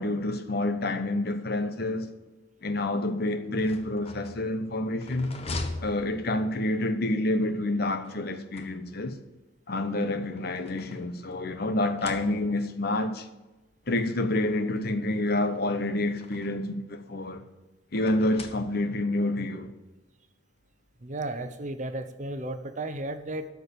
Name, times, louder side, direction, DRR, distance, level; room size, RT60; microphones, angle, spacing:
voice 1, 0.0-2.1 2.6-5.4 5.8-9.2 9.7-13.3 13.9-17.4 17.9-19.7, left 1 dB, 60° left, 1.0 m, -28 dB
sound 1, 3.5-6.8 8.0-9.2 10.0-11.4 11.8-12.8 13.7-13.8 14.1-14.2 15.4-16.7 18.0-19.1, left 2 dB, 35° left, 1.0 m, -42 dB
voice 2, 21.0-23.5, right 2 dB, 40° right, 0.9 m, -34 dB
13.0 x 4.7 x 8.6 m
head